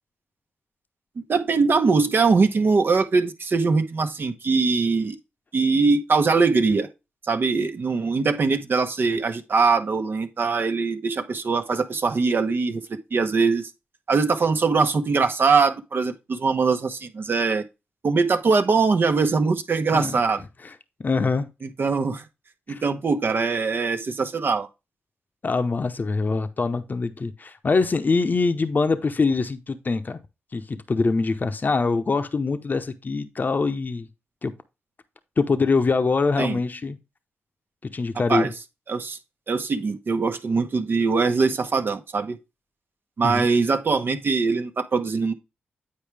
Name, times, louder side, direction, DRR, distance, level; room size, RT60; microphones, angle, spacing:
voice 1, 1.2-5.2 5.5-6.9 7.3-12.8 13.1-13.7 14.1-17.6 18.0-20.4 21.6-22.2 22.7-24.7 36.4-36.6 38.3-38.5 38.9-39.2 39.5-42.4 43.2-45.3, right 4 dB, 55° right, 1.1 m, -22 dB
voice 2, 21.0-21.5 22.7-22.8 25.4-30.2 30.5-34.1 34.4-34.5 35.4-37.0 37.8-38.5 43.2-43.5, left 4 dB, 45° left, 0.9 m, -24 dB
8.7 x 4.7 x 3.4 m
cardioid pair, 50°, 4 cm